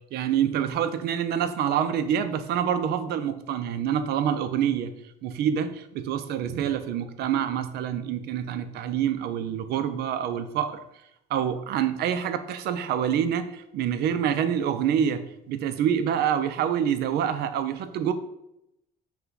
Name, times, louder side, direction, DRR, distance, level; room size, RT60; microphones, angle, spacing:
voice 1, 0.1-4.9 5.2-10.8 11.3-15.2 15.5-18.1, right 9 dB, 75° right, 10 dB, 0.5 m, -26 dB
5.6 x 2.3 x 3.9 m, 0.83 s
cardioid pair, 110°, 17 cm